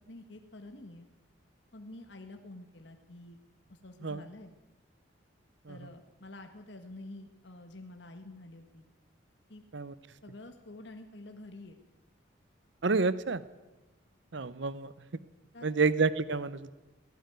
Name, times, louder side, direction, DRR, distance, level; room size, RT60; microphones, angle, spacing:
voice 1, 0.1-1.1 1.7-3.4 3.7-4.5 5.7-8.9 9.5-9.6 10.2-11.8 15.5-15.9, left 2 dB, 60° left, 5 dB, 1.6 m, -48 dB
voice 2, 12.8-13.4 14.3-14.9 15.6-16.7, right 4 dB, 65° right, 17 dB, 0.7 m, -29 dB
17.5 x 17.0 x 9.4 m, 1.1 s
head